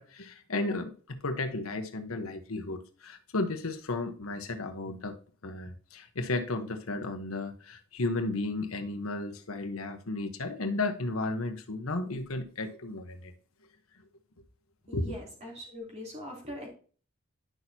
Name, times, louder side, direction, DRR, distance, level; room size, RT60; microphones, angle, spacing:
voice 1, 0.0-5.1 5.4-13.3 14.9-15.2, left 2 dB, 85° left, 6 dB, 1.1 m, -34 dB
voice 2, 14.9-16.7, left 1 dB, 35° right, -2 dB, 3.3 m, -42 dB
10.5 x 6.2 x 2.8 m, 0.42 s
head